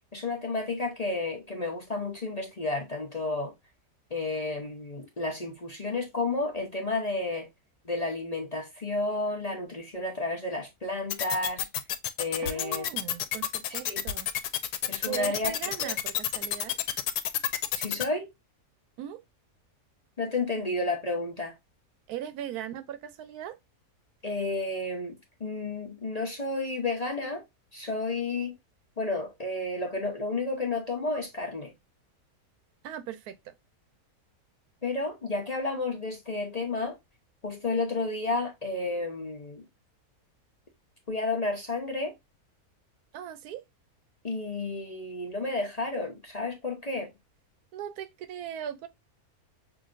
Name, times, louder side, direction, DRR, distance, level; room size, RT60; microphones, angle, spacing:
voice 1, 0.1-3.5 4.1-7.5 7.8-11.7 12.2-12.8 13.7-14.0 14.9-15.5 15.8-15.9 17.7-18.3 20.2-21.5 24.2-27.4 27.7-28.6 29.0-31.7 34.8-37.0 37.4-39.6 41.1-42.1 44.2-47.1, left 2 dB, 35° left, 0.7 m, -31 dB
sound 1, 11.1-18.0, left 11 dB, 90° left, 1.1 m, -29 dB
voice 2, 12.4-14.3 15.0-16.8 19.0-19.2 22.1-23.6 32.8-33.5 43.1-43.6 47.7-48.9, right 10 dB, 85° right, 1.1 m, -39 dB
5.8 x 2.7 x 2.5 m
omnidirectional pair, 1.6 m